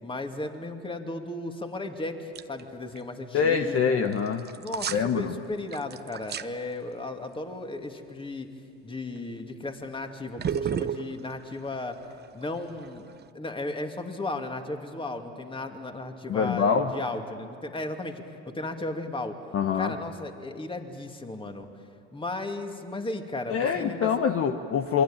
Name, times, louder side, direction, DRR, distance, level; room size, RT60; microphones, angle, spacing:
voice 1, 0.0-4.1 4.5-8.5 8.8-12.0 12.3-13.1 13.3-19.4 19.8-21.7 22.1-24.1, left 2 dB, 15° left, 5 dB, 2.6 m, -35 dB
sound 1, 2.4-2.6 2.9-3.0 4.1-5.1 5.5-6.5 9.2-9.4 10.4-13.3, right 8 dB, 30° right, 0.9 m, -32 dB
voice 2, 3.3-4.4 4.9-5.3 16.3-16.9 19.5-19.9 23.5-25.0, left 6 dB, 40° left, 6 dB, 1.4 m, -25 dB
28.0 x 23.0 x 9.0 m, 2.3 s
supercardioid pair, 95°, 36 cm